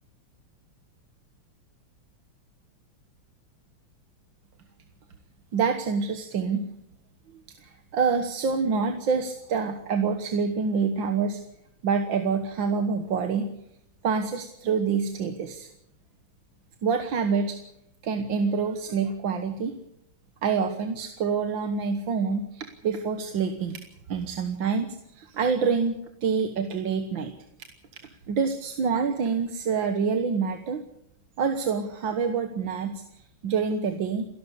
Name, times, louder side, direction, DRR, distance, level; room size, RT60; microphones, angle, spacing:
voice 1, 5.5-6.7 7.6-11.4 11.8-13.5 14.0-15.7 16.8-17.6 18.0-19.7 20.4-23.8 24.1-27.3 28.3-30.8 31.4-34.3, right 5 dB, 65° right, 7 dB, 2.0 m, -26 dB
29.0 x 12.5 x 8.3 m, 0.78 s
omnidirectional pair, 2.3 m